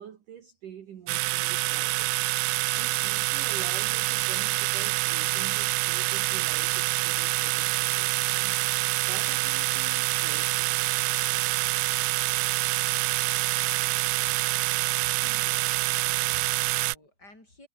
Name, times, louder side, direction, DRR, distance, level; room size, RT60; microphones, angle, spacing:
voice 1, 0.0-2.2 2.7-8.6 9.0-11.0, right 9 dB, 55° right, 3.0 m, -46 dB
sound 1, 1.1-17.0, right 24 dB, 85° right, 2.4 m, -26 dB
voice 2, 14.9-17.7, left 2 dB, 20° left, 7.3 m, -53 dB
omnidirectional pair, 5.2 m